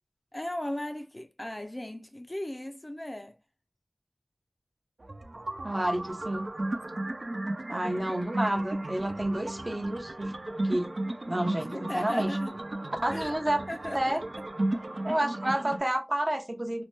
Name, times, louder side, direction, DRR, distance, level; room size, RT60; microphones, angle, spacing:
voice 1, 0.3-3.4 11.7-12.6 13.1-13.4 13.7-14.0, left 1 dB, 30° left, 0.4 m, -37 dB
sound 1, 5.0-15.8, right 1 dB, 65° right, 0.4 m, -35 dB
voice 2, 5.6-6.5 7.7-10.3 10.6-10.9 11.3-12.4 13.0-13.6 13.9-14.2 15.0-16.8, right 1 dB, 35° right, 0.7 m, -29 dB
2.8 x 2.1 x 3.1 m
wide cardioid pair, 50°, 0 cm